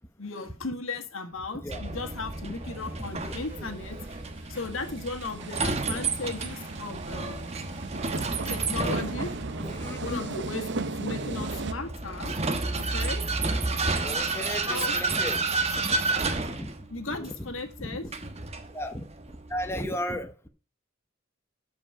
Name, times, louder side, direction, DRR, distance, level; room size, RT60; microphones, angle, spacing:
voice 1, 0.2-4.0 4.5-7.6 8.5-9.3 10.0-12.3 12.8-13.2 14.7-15.0 16.9-18.0, left 3 dB, 75° left, 5 dB, 1.8 m, -36 dB
Vehicle, 1.7-19.8, right 3 dB, 30° right, 1.2 m, -31 dB
sound 1, 1.9-6.9, equal, 10° right, 4.9 m, -55 dB
sound 2, 2.6-11.7, right 3 dB, 60° right, 0.9 m, -37 dB
voice 2, 3.0-3.7 5.6-6.0 8.1-8.4 8.7-8.9 9.2-9.3 9.6-10.3 11.0-11.5 12.3-12.5 13.4-13.7 14.0-15.4 15.7-16.0 16.3-16.7 17.1-17.5 17.8-18.1 18.7-19.0 19.5-20.5, left 1 dB, 15° left, 5 dB, 1.0 m, -36 dB
13.0 x 5.3 x 4.9 m, 0.37 s
head